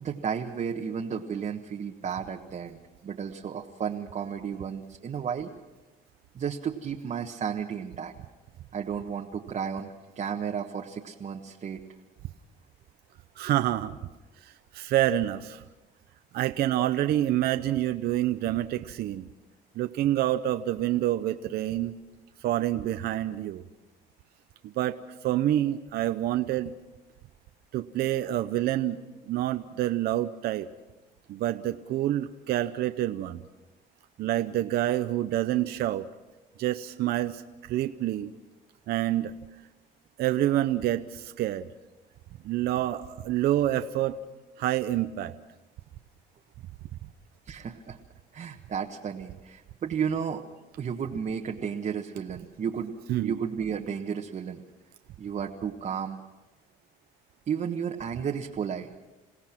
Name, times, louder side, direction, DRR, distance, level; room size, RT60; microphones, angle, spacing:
voice 1, 0.0-5.5 6.3-8.1 8.7-11.8 47.5-48.0 48.3-50.4 50.8-52.9 53.2-54.6 55.2-56.2 57.5-59.0, right 7 dB, 45° right, 1 dB, 1.4 m, -33 dB
voice 2, 13.4-14.0 14.4-15.6 16.3-19.2 19.8-22.0 22.4-23.6 24.6-25.0 25.2-26.7 27.7-30.7 31.3-33.4 34.2-36.0 36.6-38.3 38.9-39.3 40.2-41.7 42.4-44.2 44.6-45.3 53.1-53.4, right 13 dB, 70° right, 9 dB, 0.8 m, -27 dB
28.5 x 17.0 x 6.0 m, 1.1 s
cardioid pair, 110°, 17 cm